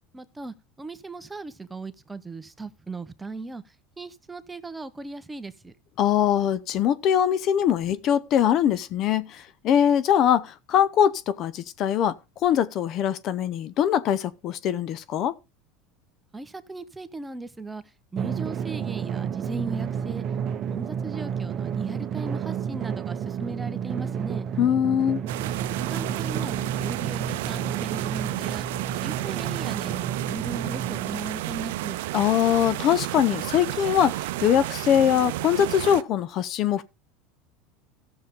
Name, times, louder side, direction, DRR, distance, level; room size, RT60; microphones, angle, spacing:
voice 1, 0.1-3.6 4.0-5.7 16.3-17.8 18.1-20.2 20.7-24.5 25.9-28.7 29.0-32.0, right 3 dB, 10° right, 0.9 m, -37 dB
voice 2, 6.0-15.3 24.6-25.2 32.1-36.8, left 9 dB, 50° left, 0.7 m, -22 dB
Drum, 18.2-31.1, right 8 dB, 40° right, 0.8 m, -31 dB
sound 1, 25.3-36.0, right 16 dB, 80° right, 0.5 m, -32 dB
14.5 x 7.0 x 3.7 m
supercardioid pair, 105°, 0 cm